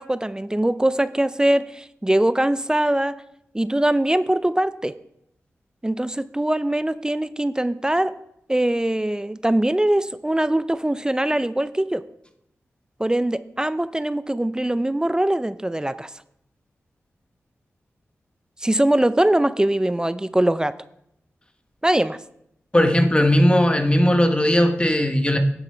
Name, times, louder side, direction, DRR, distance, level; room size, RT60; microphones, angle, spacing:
voice 1, 0.0-3.1 3.5-4.9 5.8-8.1 8.5-12.0 13.0-16.1 18.6-20.7 21.8-22.2, right 1 dB, 15° right, 14 dB, 0.4 m, -22 dB
voice 2, 22.7-25.4, equal, 20° left, 6 dB, 1.2 m, -18 dB
10.0 x 7.1 x 4.4 m, 0.77 s
cardioid pair, 50°, 5 cm